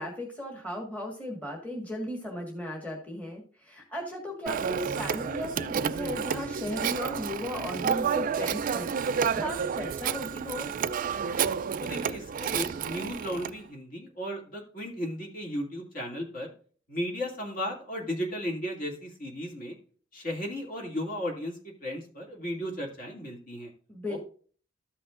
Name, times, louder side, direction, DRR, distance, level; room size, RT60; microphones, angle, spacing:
voice 1, 0.0-10.7 23.9-24.2, left 1 dB, 10° left, -1 dB, 1.6 m, -36 dB
Telephone, 4.5-13.5, right 7 dB, 45° right, 0.4 m, -30 dB
voice 2, 11.8-16.5 16.9-19.8 20.1-23.7 24.1-24.2, equal, 45° left, 0 dB, 2.5 m, -35 dB
13.5 x 5.7 x 2.5 m, 0.43 s
head